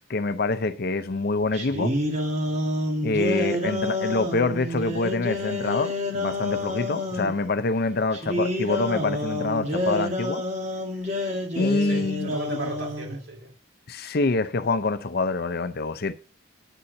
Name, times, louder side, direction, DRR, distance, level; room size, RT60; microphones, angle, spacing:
voice 1, 0.0-1.9 3.0-10.4 11.5-12.3 13.9-16.1, left 3 dB, 50° left, 0.6 m, -26 dB
sound 1, 1.5-7.3 8.1-13.2, left 1 dB, 35° right, 1.9 m, -28 dB
voice 2, 11.8-13.5, right 3 dB, 60° right, 4.2 m, -37 dB
9.9 x 4.3 x 6.4 m
head